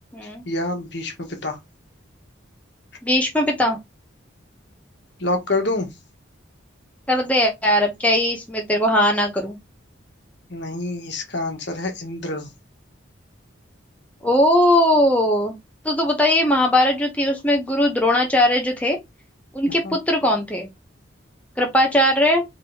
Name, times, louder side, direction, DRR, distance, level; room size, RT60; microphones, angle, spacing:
voice 1, 0.5-1.6 5.2-5.9 10.5-12.5 19.7-19.9, left 2 dB, 60° left, 1.3 m, -27 dB
voice 2, 3.0-3.8 7.1-9.6 14.2-15.6 15.8-19.0 19.5-20.7 21.6-22.4, left 1 dB, 5° left, 0.8 m, -19 dB
5.0 x 3.3 x 2.8 m
head